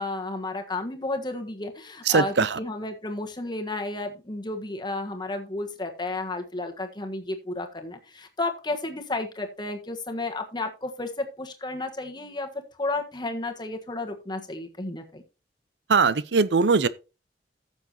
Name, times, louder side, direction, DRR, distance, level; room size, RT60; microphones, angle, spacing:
voice 1, 0.0-12.5 12.8-15.2, left 2 dB, 25° left, 1.4 m, -32 dB
voice 2, 2.0-2.6 15.9-16.9, right 4 dB, 75° right, 0.6 m, -21 dB
14.5 x 7.1 x 2.9 m
head